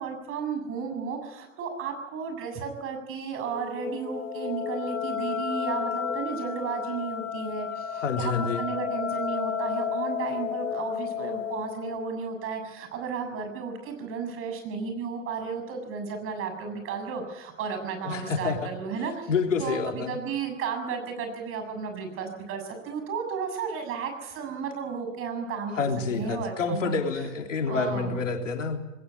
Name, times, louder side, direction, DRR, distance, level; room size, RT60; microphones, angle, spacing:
voice 1, 0.0-19.3 19.6-27.0 27.7-28.2, right 5 dB, 35° right, 6 dB, 7.3 m, -33 dB
sound 1, 3.3-12.0, left 7 dB, 35° left, 4.5 m, -32 dB
voice 2, 7.9-8.7 18.0-18.7 19.3-20.2 25.7-28.9, left 5 dB, 80° left, 4 dB, 3.5 m, -28 dB
20.5 x 19.0 x 9.7 m, 1.0 s
hypercardioid pair, 110°, 37 cm